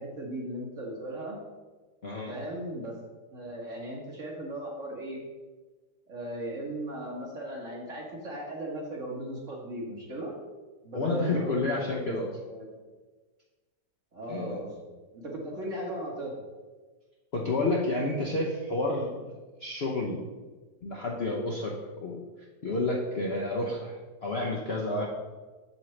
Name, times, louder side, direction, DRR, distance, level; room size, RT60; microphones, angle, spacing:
voice 1, 0.0-1.4 2.3-2.9 3.3-5.2 6.1-10.3 10.8-12.1 12.5-12.7 14.1-16.3, right 1 dB, 45° right, -1 dB, 1.7 m, -37 dB
voice 2, 2.0-2.3 10.9-12.3 14.3-14.6 17.3-20.2 20.8-21.7 22.0-22.2 22.6-25.1, left 2 dB, 50° left, -2 dB, 0.8 m, -30 dB
7.6 x 7.4 x 3.3 m, 1.3 s
omnidirectional pair, 1.9 m